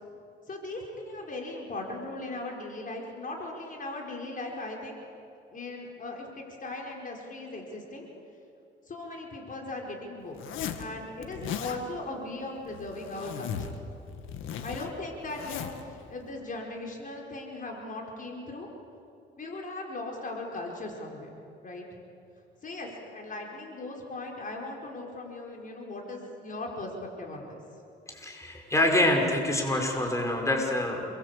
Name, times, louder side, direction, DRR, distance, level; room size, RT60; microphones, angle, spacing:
voice 1, 0.5-5.0 5.5-8.1 8.9-10.4 10.8-13.7 14.6-18.7 19.4-21.3 21.6-21.8 22.6-27.6, left 2 dB, 40° left, 0 dB, 5.0 m, -38 dB
Zipper (clothing), 10.3-10.9 11.2-11.8 12.6-13.8 14.1-15.8, left 8 dB, 90° left, 1.9 m, -37 dB
voice 2, 28.1-31.0, left 1 dB, 15° left, 1 dB, 5.1 m, -26 dB
29.0 x 22.0 x 8.4 m, 2.6 s
cardioid pair, 90°, 20 cm